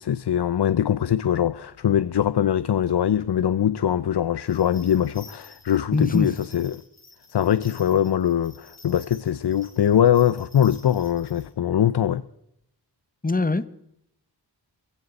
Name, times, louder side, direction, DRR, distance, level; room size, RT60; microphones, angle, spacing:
voice 1, 0.0-6.8 7.3-12.2, left 10 dB, 75° left, 0.6 m, -22 dB
sound 1, 4.4-11.5, left 3 dB, 40° left, 2.7 m, -51 dB
voice 2, 5.9-6.3 13.2-13.7, left 3 dB, 20° left, 1.0 m, -22 dB
22.5 x 16.0 x 4.0 m
wide cardioid pair, 70°, 40 cm